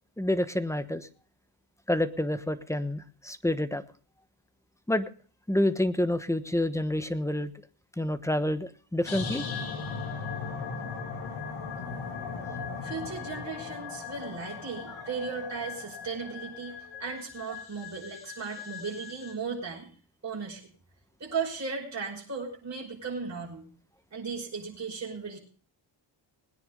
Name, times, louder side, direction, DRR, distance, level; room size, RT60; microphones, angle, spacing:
voice 1, 0.2-1.1 1.9-3.8 4.9-5.1 5.5-7.5 8.0-9.5, left 1 dB, 5° left, 12 dB, 1.2 m, -28 dB
sound 1, 9.0-19.3, left 5 dB, 75° left, 3.6 m, -38 dB
voice 2, 12.8-19.9 20.2-20.6 21.2-23.7 24.1-25.4, right 5 dB, 35° right, -3 dB, 5.6 m, -36 dB
20.5 x 10.0 x 3.9 m, 0.41 s
cardioid pair, 75°, 49 cm